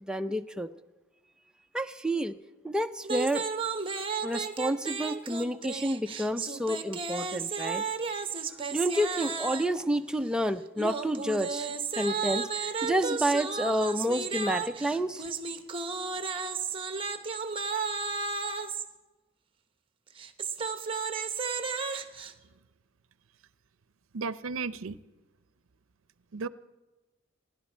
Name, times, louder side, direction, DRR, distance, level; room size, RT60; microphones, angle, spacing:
voice 1, 0.0-0.7 1.7-2.4 2.6-3.5 4.2-7.8 8.7-11.7 11.9-15.2, equal, 5° right, 7 dB, 0.5 m, -29 dB
sound 1, 3.0-9.8 10.8-18.9 20.1-22.3, right 5 dB, 25° right, 0.9 m, -33 dB
voice 2, 24.1-25.0 26.3-26.5, right 4 dB, 75° right, 16 dB, 0.6 m, -34 dB
28.0 x 11.0 x 4.4 m, 1.2 s
head